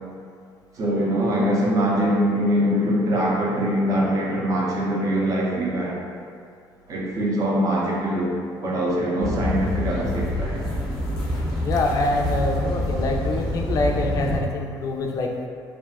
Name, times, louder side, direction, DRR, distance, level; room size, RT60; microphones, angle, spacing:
voice 1, 0.7-6.0 6.9-8.3 8.6-10.7, equal, 45° right, -3 dB, 0.6 m, -23 dB
sound 1, 9.2-14.4, left 1 dB, 5° left, 0.9 m, -26 dB
voice 2, 11.6-15.3, left 2 dB, 45° left, 2 dB, 0.3 m, -25 dB
2.5 x 2.1 x 3.4 m, 2.3 s
cardioid pair, 115°, 8 cm